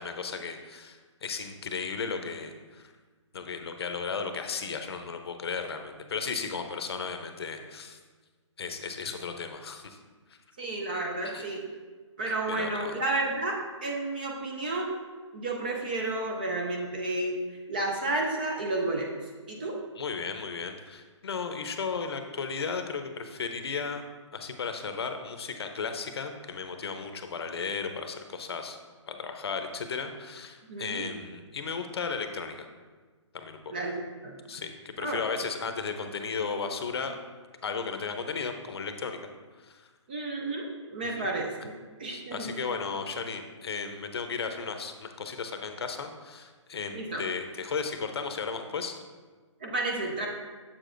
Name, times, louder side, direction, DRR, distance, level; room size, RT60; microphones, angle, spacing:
voice 1, 0.0-2.9 3.3-8.0 8.6-10.0 11.2-11.4 12.5-12.9 20.0-24.0 24.3-28.8 29.1-32.7 33.3-33.8 34.5-37.2 37.6-39.2 39.6-39.9 41.2-41.3 42.1-49.0, left 5 dB, 55° left, 6 dB, 0.7 m, -35 dB
voice 2, 10.6-11.6 12.2-14.9 15.3-17.4 17.7-19.1 19.5-19.8 30.7-31.1 33.7-34.4 35.0-35.2 40.1-41.7 42.0-42.5 46.9-47.2 49.6-50.3, right 2 dB, 20° right, 0 dB, 0.4 m, -31 dB
7.3 x 6.7 x 2.5 m, 1.4 s
hypercardioid pair, 165°, 16 cm